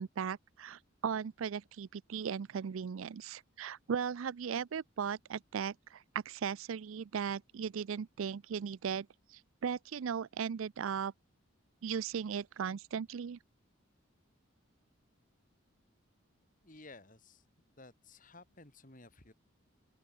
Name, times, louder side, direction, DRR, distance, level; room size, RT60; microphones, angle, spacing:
voice 1, 0.0-11.1 11.8-13.4, right 7 dB, 75° right, 0.4 m, -37 dB
voice 2, 16.6-17.4 17.8-19.3, left 2 dB, 40° left, 2.8 m, -55 dB
open air
head